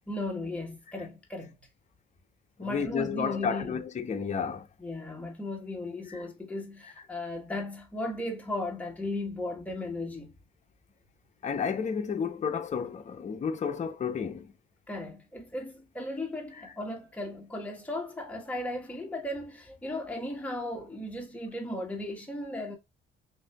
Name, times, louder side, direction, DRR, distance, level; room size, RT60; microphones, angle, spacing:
voice 1, 0.1-1.5 2.6-3.8 4.8-10.3 14.9-22.8, left 1 dB, 5° left, 1.3 m, -36 dB
voice 2, 2.6-4.7 6.1-6.2 11.4-14.5, left 6 dB, 35° left, 0.7 m, -31 dB
6.1 x 2.6 x 2.3 m
cardioid pair, 90°, 20 cm